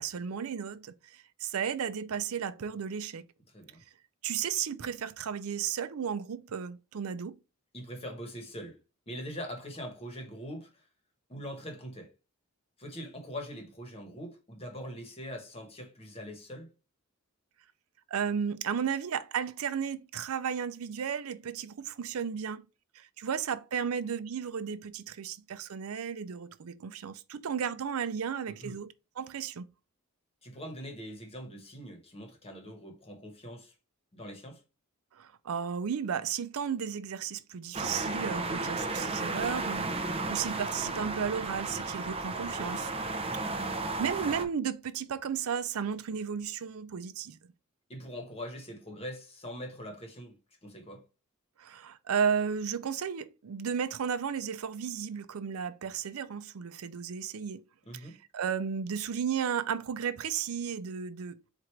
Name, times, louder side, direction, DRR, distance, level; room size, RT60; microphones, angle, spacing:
voice 1, 0.0-3.2 4.2-7.4 18.1-22.7 23.0-29.7 35.2-42.9 43.4-43.6 44.0-47.4 51.6-57.6 58.3-61.4, right 7 dB, 80° right, 0.5 m, -34 dB
voice 2, 3.5-3.8 7.7-8.8 9.1-10.9 11.3-12.1 12.8-16.7 28.5-28.8 30.4-33.7 34.1-34.6 43.2-43.6 47.9-51.1 57.8-58.2, equal, 30° left, 1.1 m, -43 dB
sound 1, 37.7-44.4, right 3 dB, 25° right, 0.6 m, -34 dB
4.6 x 2.5 x 4.4 m
head